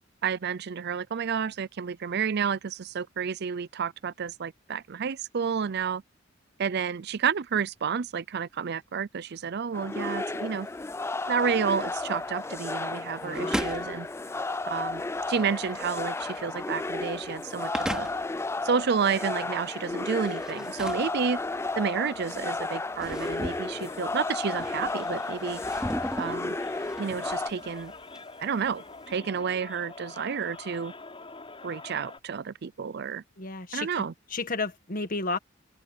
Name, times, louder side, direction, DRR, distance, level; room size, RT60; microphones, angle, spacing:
voice 1, 0.2-6.0 6.6-10.7 11.3-14.1 14.7-15.0 15.3-18.1 18.6-21.4 21.8-25.6 26.2-26.6 27.0-27.9 28.4-30.9 31.6-33.2 33.7-34.1, right 6 dB, 55° right, 0.5 m, -30 dB
sound 1, 9.7-27.5, left 3 dB, 15° left, 0.4 m, -33 dB
sound 2, 10.0-29.2, equal, 5° right, 3.5 m, -40 dB
voice 2, 13.2-13.7 33.4-34.0 34.3-35.4, left 3 dB, 45° left, 1.7 m, -32 dB
sound 3, 23.1-32.2, left 3 dB, 30° left, 7.1 m, -45 dB
open air
head